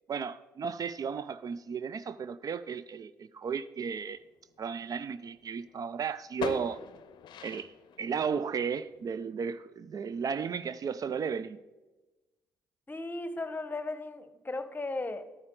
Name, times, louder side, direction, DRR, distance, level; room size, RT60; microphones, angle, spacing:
voice 1, 0.1-4.2 4.6-6.8 7.4-7.7 8.0-11.6, right 6 dB, 50° right, 0.4 m, -34 dB
sound 1, 4.1-5.8 6.2-9.1, left 7 dB, 65° left, 0.6 m, -43 dB
voice 2, 12.9-15.2, left 2 dB, 25° left, 1.0 m, -36 dB
11.0 x 9.4 x 3.8 m
hypercardioid pair, 50°, 8 cm